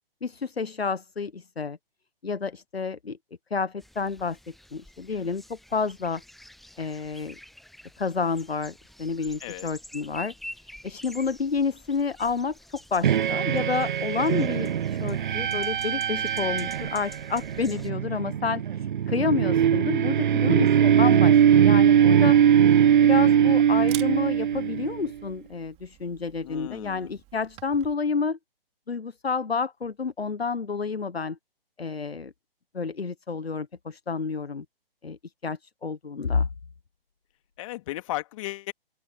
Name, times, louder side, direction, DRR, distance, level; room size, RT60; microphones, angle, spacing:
voice 1, 0.2-1.8 2.2-3.2 3.5-6.2 6.8-7.4 8.0-8.7 9.0-10.3 10.6-22.4 23.0-28.4 28.9-31.4 31.8-32.3 32.7-34.6 35.0-35.2 35.4-36.5, left 5 dB, 85° left, 1.1 m, -29 dB
sound 1, 3.8-17.9, left 1 dB, ahead, 0.8 m, -48 dB
sound 2, 13.0-25.1, right 9 dB, 55° right, 0.5 m, -21 dB
Camera, 22.1-27.9, right 18 dB, 20° right, 4.3 m, -47 dB
voice 2, 26.4-27.2 37.6-38.7, left 17 dB, 35° left, 2.5 m, -35 dB
open air
figure-of-eight pair, 135°, 30 cm